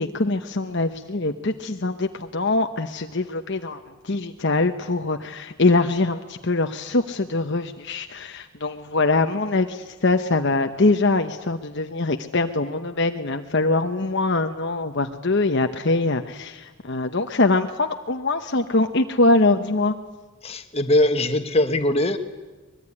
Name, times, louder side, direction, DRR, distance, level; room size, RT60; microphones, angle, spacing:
voice 1, 0.0-19.9, left 2 dB, 50° left, 6 dB, 1.0 m, -23 dB
voice 2, 20.4-22.2, left 1 dB, 25° left, 6 dB, 1.6 m, -21 dB
24.0 x 21.5 x 9.9 m, 1.2 s
head